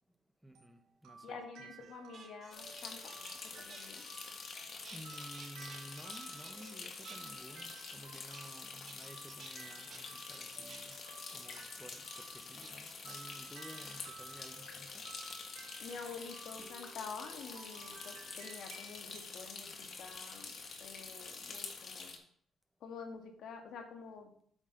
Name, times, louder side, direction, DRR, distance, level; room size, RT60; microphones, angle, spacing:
voice 1, 0.4-1.7 4.9-11.0 11.3-15.0, equal, 5° right, 1.0 m, -53 dB
sound 1, 0.5-19.4, right 5 dB, 90° right, 2.4 m, -56 dB
voice 2, 1.2-3.2 3.4-4.0 15.8-22.2 22.8-24.3, left 5 dB, 75° left, 1.6 m, -48 dB
sound 2, 1.8-4.6 4.8-6.8 7.0-8.6 8.9-9.5 9.9-10.0 10.3-11.0 11.5-11.8 12.2-12.3 12.6-13.7 14.5-14.9 16.2-16.5 17.1-17.3 17.9-18.5 19.9-21.1 21.4-21.7, right 5 dB, 45° right, 2.1 m, -56 dB
sound 3, 2.5-22.2, left 4 dB, 55° left, 1.6 m, -47 dB
8.7 x 6.3 x 3.9 m
cardioid pair, 90°, 0 cm